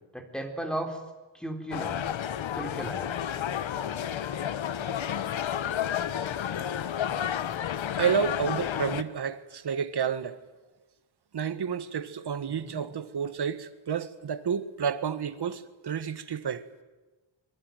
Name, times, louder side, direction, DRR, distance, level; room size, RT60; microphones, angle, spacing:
voice 1, 0.1-1.0 1.3-2.1 2.5-3.1 12.5-12.8, right 1 dB, ahead, 3.7 m, -35 dB
sound 1, 1.7-9.0, left 9 dB, 80° left, 1.3 m, -31 dB
voice 2, 8.0-10.4 11.3-16.7, right 7 dB, 55° right, 1.6 m, -30 dB
25.0 x 23.5 x 9.2 m
wide cardioid pair, 145°, 46 cm